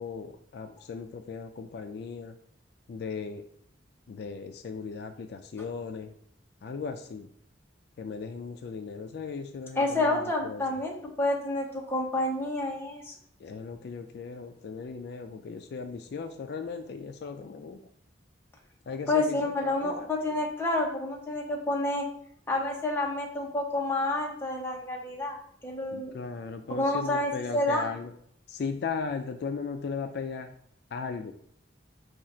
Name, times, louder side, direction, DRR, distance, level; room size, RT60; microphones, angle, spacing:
voice 1, 0.0-2.3 2.9-3.4 4.1-6.1 6.6-7.3 8.0-10.8 13.4-17.8 18.9-20.1 25.9-28.1 28.5-30.5 30.9-31.3, left 5 dB, 60° left, 7 dB, 0.3 m, -37 dB
voice 2, 9.8-13.1 19.1-22.1 22.5-25.4 25.6-26.1 26.7-27.9, left 2 dB, 15° left, -1 dB, 0.8 m, -29 dB
5.0 x 2.4 x 4.2 m, 0.66 s
head